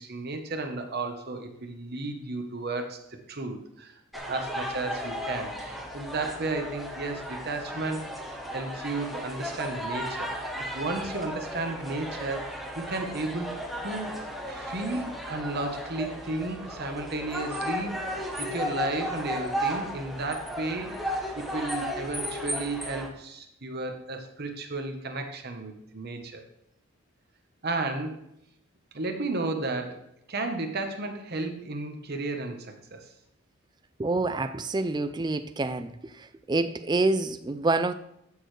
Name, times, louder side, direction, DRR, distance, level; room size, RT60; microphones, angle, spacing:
voice 1, 0.0-3.0 3.3-13.5 13.8-14.2 14.5-21.0 21.3-26.4 27.6-28.2 28.9-30.0 30.3-33.1, right 2 dB, 45° right, 5 dB, 1.1 m, -33 dB
sound 1, 4.1-23.1, equal, ahead, 1.0 m, -35 dB
voice 2, 34.0-35.9 36.5-37.9, right 2 dB, 20° right, 11 dB, 0.3 m, -27 dB
14.0 x 6.6 x 3.3 m, 0.79 s
head